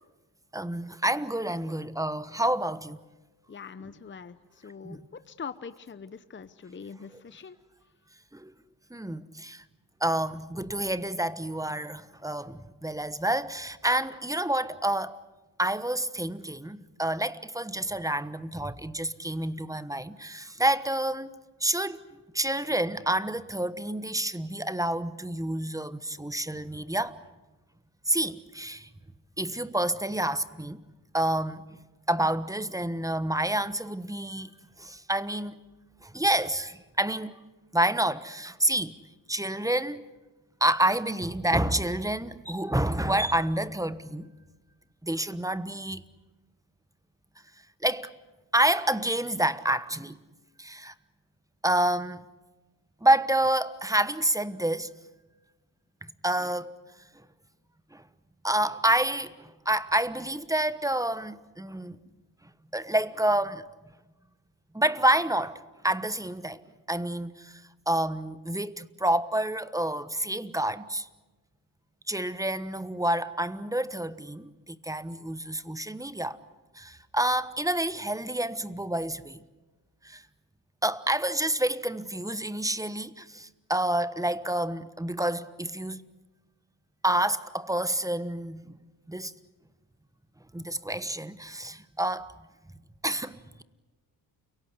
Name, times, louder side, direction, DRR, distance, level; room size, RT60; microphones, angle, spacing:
voice 1, 0.5-3.0 4.8-5.0 7.1-7.2 8.3-8.5 8.9-9.6 10.0-15.2 15.6-21.3 21.6-22.0 22.3-27.2 28.1-28.9 29.4-30.8 31.1-31.6 32.1-34.5 34.8-35.6 36.0-37.4 37.7-38.9 39.3-40.0 40.6-44.3 45.0-46.0 47.8-48.1 48.5-50.2 50.6-50.9 51.6-52.2 53.0-54.9 56.2-56.7 57.9-58.0 58.4-62.0 62.7-63.6 64.7-66.6 66.9-67.6 67.9-71.1 72.1-76.4 76.7-79.4 80.0-80.2 80.8-86.0 87.0-88.7 89.1-89.3 90.5-92.3 93.0-93.6, right 1 dB, 5° right, 1.2 m, -28 dB
voice 2, 3.5-7.6 62.1-62.2, left 6 dB, 25° left, 0.9 m, -43 dB
29.5 x 17.5 x 9.8 m
cardioid pair, 75°, 46 cm